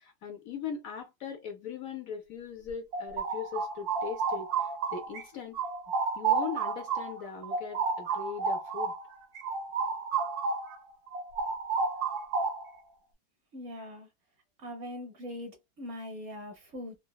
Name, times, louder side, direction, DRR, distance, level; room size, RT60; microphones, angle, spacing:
voice 1, 0.0-5.6 6.1-8.9, left 7 dB, 65° left, 1.0 m, -40 dB
sound 1, 2.7-5.2 5.5-10.8 11.1-12.8, right 5 dB, 70° right, 1.2 m, -31 dB
voice 2, 13.5-14.1 14.6-17.0, left 1 dB, 55° right, 1.0 m, -41 dB
4.0 x 2.1 x 2.2 m
omnidirectional pair, 1.8 m